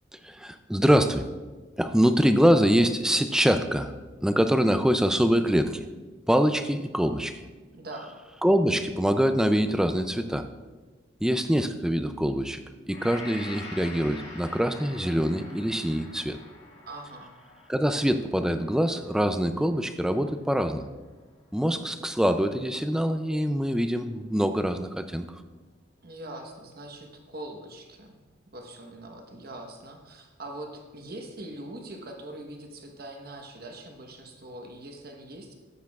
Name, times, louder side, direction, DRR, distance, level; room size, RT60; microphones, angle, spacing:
voice 1, 0.2-1.2 1.8-3.9 4.2-5.9 6.3-7.4 8.4-10.5 11.2-12.6 12.9-16.4 17.7-20.9 21.5-25.3, equal, 5° right, 8 dB, 0.3 m, -24 dB
voice 2, 7.7-8.2 16.9-17.3 26.0-28.1 28.5-35.5, right 1 dB, 50° right, 3 dB, 1.1 m, -42 dB
Gong, 12.9-21.2 21.7-21.8, left 2 dB, 50° left, 2.3 m, -46 dB
13.5 x 8.1 x 2.4 m, 1.3 s
head